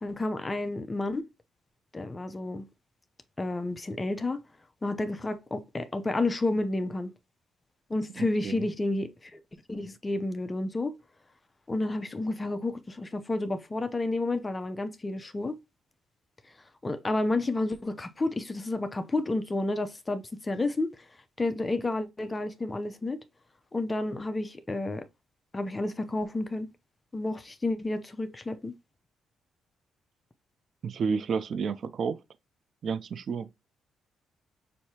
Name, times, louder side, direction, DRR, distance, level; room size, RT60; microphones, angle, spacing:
voice 1, 0.0-1.3 1.9-2.7 3.4-4.4 4.8-7.1 7.9-9.4 9.7-11.0 11.7-15.6 16.8-21.0 21.4-23.2 23.7-25.1 25.5-26.7 27.1-28.7, left 2 dB, 20° left, 0.7 m, -30 dB
voice 2, 8.2-8.6 30.8-32.2 32.8-33.5, right 5 dB, 55° right, 0.5 m, -31 dB
6.3 x 2.7 x 2.8 m
cardioid pair, 90°, 0 cm